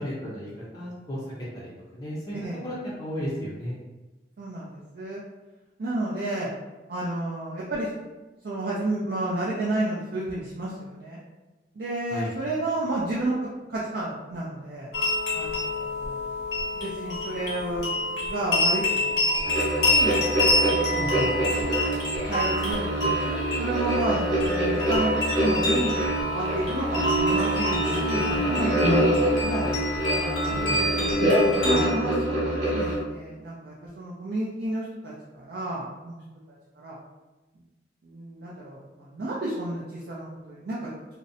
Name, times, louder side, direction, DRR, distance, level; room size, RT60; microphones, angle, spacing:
voice 1, 0.0-2.3 2.6-3.8 12.1-12.3 20.9-21.3 30.5-30.9, equal, 20° left, -8 dB, 0.4 m, -34 dB
voice 2, 4.4-5.2 5.8-6.5 6.9-7.9 8.4-11.2 11.7-14.9 15.3-16.4 16.7-17.9 18.2-20.2 21.0-29.0 29.4-29.7 30.4-31.1 31.5-36.2 36.7-37.0 38.0-40.9, right 2 dB, 55° right, -6 dB, 0.4 m, -31 dB
sound 1, 14.9-31.9, left 1 dB, 85° left, 0.8 m, -28 dB
sound 2, 19.4-33.0, right 1 dB, 80° right, 1.0 m, -25 dB
2.5 x 2.0 x 2.6 m, 1.1 s
head